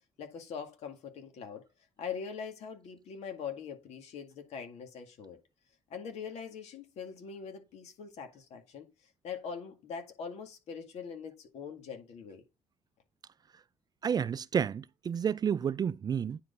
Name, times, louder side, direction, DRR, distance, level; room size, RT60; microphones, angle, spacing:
voice 1, 0.2-1.6 2.0-5.4 5.9-8.9 9.2-12.4, left 6 dB, 70° left, 2.1 m, -42 dB
voice 2, 14.0-16.4, right 7 dB, 35° right, 0.4 m, -30 dB
9.4 x 4.4 x 5.3 m
cardioid pair, 95°, 12 cm